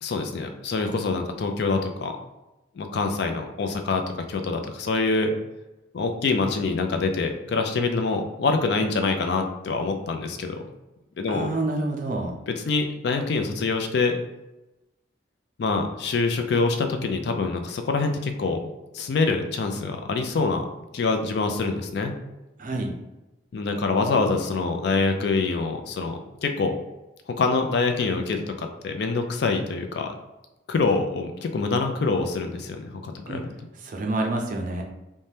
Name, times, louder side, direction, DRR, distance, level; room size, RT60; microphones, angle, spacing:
voice 1, 0.0-2.1 2.8-5.3 5.9-10.6 11.2-11.5 12.5-14.2 15.6-18.6 18.9-20.7 20.9-22.1 23.5-26.8 27.3-30.1 30.7-33.5, left 3 dB, 60° left, 5 dB, 0.3 m, -25 dB
voice 2, 11.3-12.3 22.6-22.9 33.3-33.4 33.8-34.8, right 2 dB, 40° right, 2 dB, 0.4 m, -28 dB
2.7 x 2.1 x 3.3 m, 1.0 s
head